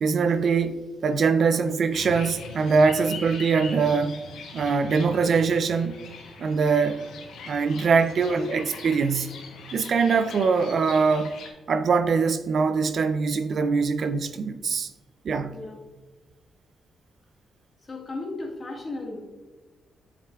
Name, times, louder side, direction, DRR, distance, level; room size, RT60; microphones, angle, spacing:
voice 1, 0.0-4.2 4.5-6.0 6.4-7.0 7.5-9.3 9.7-11.3 11.7-14.9 15.3-15.6, right 5 dB, 60° right, 0.4 m, -23 dB
sound 1, 1.9-11.5, left 4 dB, 80° left, 0.9 m, -42 dB
voice 2, 17.9-19.2, left 2 dB, 40° left, 1.6 m, -35 dB
7.6 x 5.8 x 2.3 m
cardioid pair, 65°, 0 cm